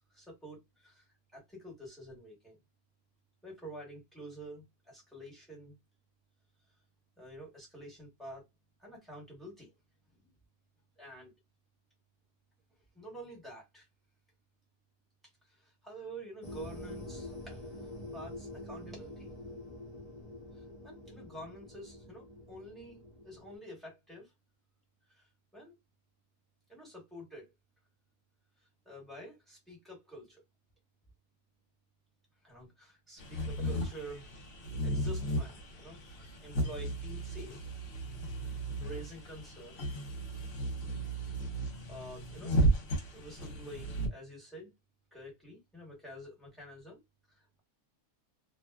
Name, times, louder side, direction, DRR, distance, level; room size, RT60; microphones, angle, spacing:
voice 1, 0.1-1.1 1.3-2.6 3.4-5.8 7.2-8.4 8.8-9.7 10.1-10.3 11.0-11.3 12.9-13.9 15.4-17.7 18.1-19.3 20.5-24.3 25.1-25.7 26.7-27.5 28.8-30.4 32.4-34.4 34.8-37.6 38.4-38.5 38.8-39.8 41.3-42.5 43.1-44.7 45.1-47.0 47.3-47.6, right 1 dB, ahead, 1.1 m, -49 dB
sound 1, 16.4-23.6, left 1 dB, 75° left, 0.3 m, -46 dB
sound 2, 33.2-44.1, right 1 dB, 60° left, 1.1 m, -34 dB
2.7 x 2.1 x 2.3 m
omnidirectional pair, 1.7 m